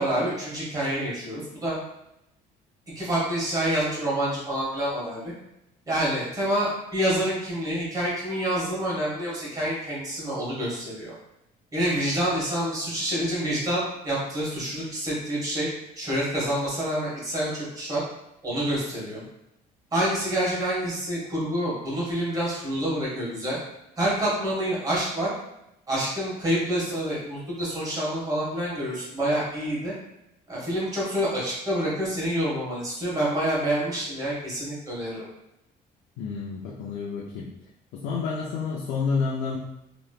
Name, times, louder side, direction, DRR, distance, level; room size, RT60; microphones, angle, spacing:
voice 1, 0.0-1.8 2.9-5.3 5.9-11.1 11.7-15.7 16.0-18.0 18.4-19.2 19.9-23.6 24.0-25.3 25.9-29.9 30.5-35.2, right 1 dB, 20° right, -6 dB, 1.5 m, -27 dB
voice 2, 36.2-37.5 37.9-39.6, left 5 dB, 90° left, -3 dB, 0.5 m, -29 dB
3.1 x 3.0 x 2.3 m, 0.86 s
cardioid pair, 110°, 17 cm